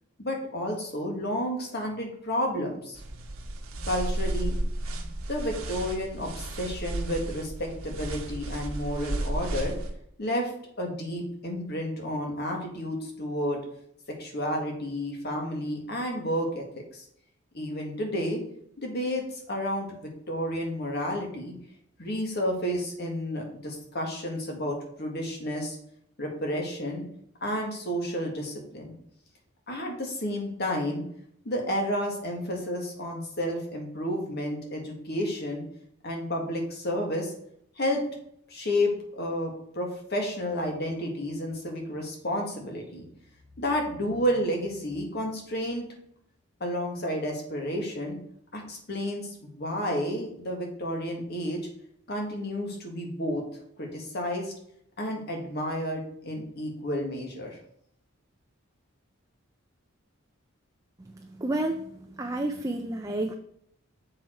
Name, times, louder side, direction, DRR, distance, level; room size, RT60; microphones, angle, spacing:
voice 1, 0.2-3.0 3.8-4.6 5.3-9.7 10.2-10.5 10.8-13.6 14.2-16.7 16.9-17.0 17.5-18.4 18.8-21.5 22.0-25.8 26.2-27.0 27.4-28.9 29.7-31.0 31.5-35.6 36.0-37.3 37.8-38.0 38.5-43.0 43.6-45.9 46.6-48.2 48.5-51.7 52.1-53.4 53.8-54.5 55.0-57.6, equal, 50° left, 1 dB, 1.7 m, -31 dB
sound 1, 3.0-9.9, right 1 dB, 80° right, 1.2 m, -33 dB
voice 2, 61.4-61.9 62.2-63.3, right 2 dB, 15° right, 3 dB, 0.4 m, -29 dB
7.4 x 4.5 x 4.5 m, 0.70 s
head